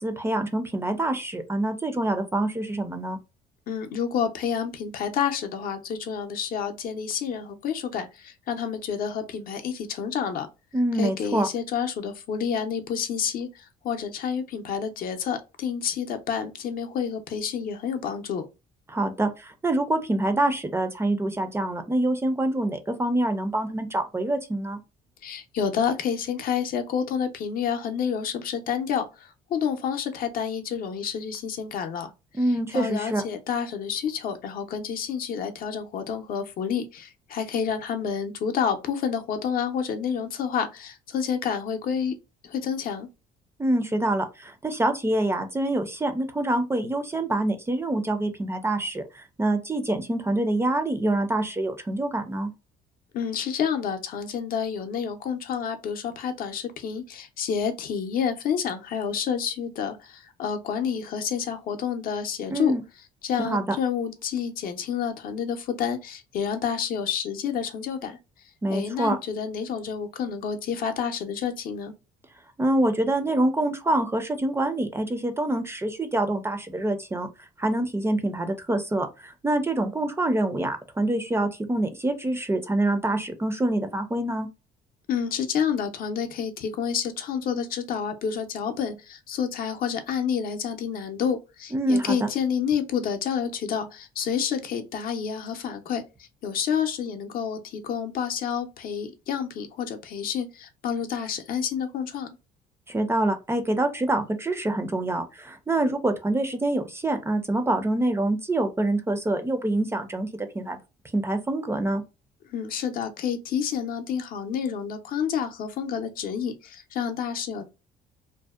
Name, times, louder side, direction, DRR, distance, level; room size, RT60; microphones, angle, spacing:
voice 1, 0.0-3.2 10.7-11.5 18.9-24.8 32.3-33.3 43.6-52.5 62.5-62.8 63.4-63.8 68.6-69.2 72.6-84.5 91.7-92.3 102.9-110.8 111.1-112.0, right 1 dB, 15° right, 0.4 m, -26 dB
voice 2, 3.7-10.5 10.9-18.5 25.2-32.1 32.7-42.2 42.4-43.1 53.1-62.7 63.2-68.2 68.7-71.9 85.1-102.4 112.5-117.7, left 7 dB, 60° left, 0.5 m, -29 dB
2.6 x 2.0 x 2.3 m
cardioid pair, 110°, 17 cm